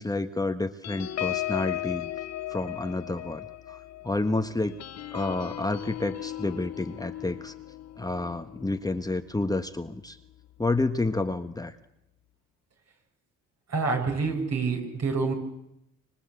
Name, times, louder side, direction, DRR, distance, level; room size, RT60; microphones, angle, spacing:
voice 1, 0.0-2.1 2.5-4.8 5.1-7.5 8.0-10.2 10.6-11.8, left 2 dB, 10° left, 8 dB, 1.3 m, -30 dB
sound 1, 0.8-9.8 10.2-10.4 10.7-11.0, left 14 dB, 60° left, 1.0 m, -37 dB
voice 2, 13.7-15.3, right 4 dB, 60° right, 3 dB, 6.7 m, -27 dB
26.0 x 24.0 x 8.3 m, 0.85 s
cardioid pair, 90°, 30 cm